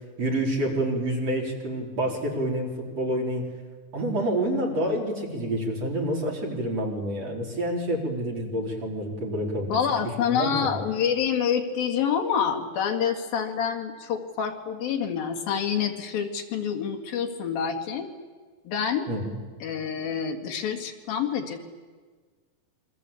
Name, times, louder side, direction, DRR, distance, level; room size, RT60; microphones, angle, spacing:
voice 1, 0.2-2.7 3.0-3.5 3.9-9.8 10.3-10.8 19.1-19.3, right 1 dB, 45° right, -1 dB, 5.0 m, -28 dB
voice 2, 9.7-18.1 18.7-19.1 19.6-21.7, left 7 dB, 75° left, 4 dB, 3.8 m, -27 dB
28.0 x 24.0 x 8.5 m, 1.5 s
omnidirectional pair, 4.3 m